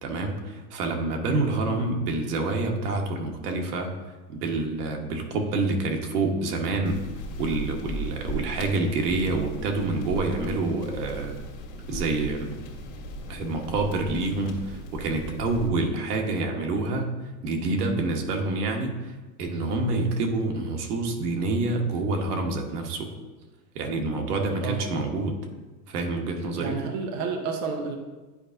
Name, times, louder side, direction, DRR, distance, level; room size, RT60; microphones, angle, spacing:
voice 1, 0.0-3.9 4.3-7.1 7.4-11.4 11.9-12.5 13.3-17.1 17.4-23.1 23.7-25.4 25.9-26.8, right 2 dB, 70° right, 3 dB, 1.3 m, -27 dB
sound 1, 6.8-15.7, equal, 40° left, 1.4 m, -37 dB
voice 2, 24.6-24.9 26.6-28.0, right 5 dB, 30° right, 3 dB, 0.5 m, -31 dB
9.9 x 4.7 x 2.6 m, 1.2 s
supercardioid pair, 140°, 49 cm